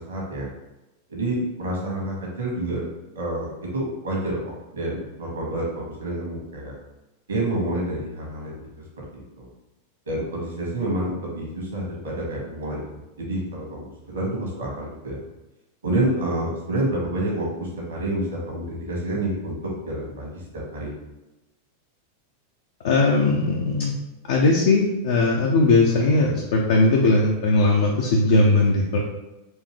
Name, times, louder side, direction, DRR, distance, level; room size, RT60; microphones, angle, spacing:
voice 1, 0.1-0.5 1.1-2.8 3.1-6.7 7.3-8.6 9.1-9.5 10.1-12.9 13.2-15.2 15.8-19.5 19.8-20.4 20.7-20.9, right 1 dB, 70° right, -3 dB, 1.5 m, -28 dB
voice 2, 22.8-23.9 24.3-29.0, left 2 dB, 55° left, -1 dB, 0.5 m, -19 dB
4.5 x 2.8 x 3.2 m, 1.0 s
figure-of-eight pair, 90°, 0 cm